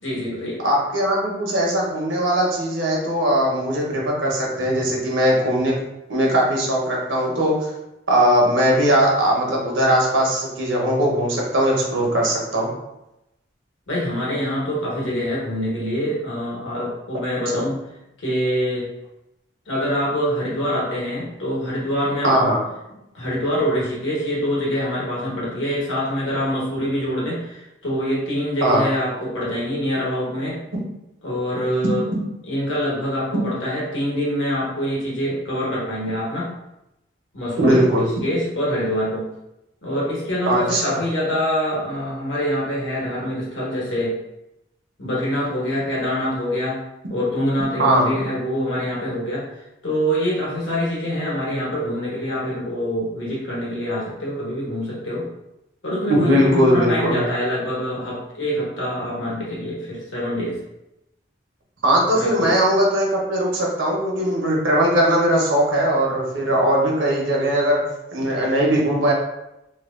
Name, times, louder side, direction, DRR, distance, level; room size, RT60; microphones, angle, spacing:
voice 1, 0.0-0.6 13.9-17.8 18.2-18.9 19.7-22.5 23.1-30.6 31.2-32.0 32.5-36.5 37.3-39.3 39.8-44.2 45.0-46.8 47.1-49.5 49.8-55.3 55.8-60.6 62.1-62.6, equal, 85° left, -5 dB, 1.2 m, -25 dB
voice 2, 0.6-5.7 6.1-7.7 8.1-12.7 17.5-17.7 22.2-22.6 28.6-28.8 31.8-31.9 37.6-38.1 40.5-41.0 47.8-48.1 56.1-57.2 61.8-67.8 68.1-69.1, right 1 dB, 90° right, -2 dB, 1.0 m, -19 dB
3.0 x 2.1 x 3.6 m, 0.90 s
head